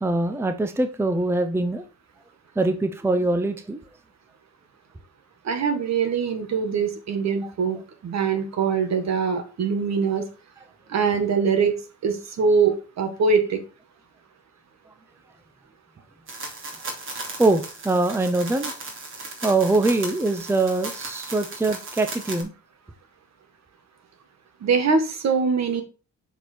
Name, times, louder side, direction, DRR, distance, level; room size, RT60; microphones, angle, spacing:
voice 1, 0.0-1.8 2.6-3.8 17.4-18.7 19.4-22.5, right 2 dB, 10° right, 8 dB, 0.7 m, -23 dB
voice 2, 5.4-10.2 10.9-11.8 12.0-13.6 24.6-25.8, right 5 dB, 60° right, 7 dB, 1.7 m, -23 dB
sound 1, 16.3-22.4, right 2 dB, 45° right, 2.7 m, -36 dB
6.8 x 4.5 x 4.4 m, 0.32 s
cardioid pair, 90°, 30 cm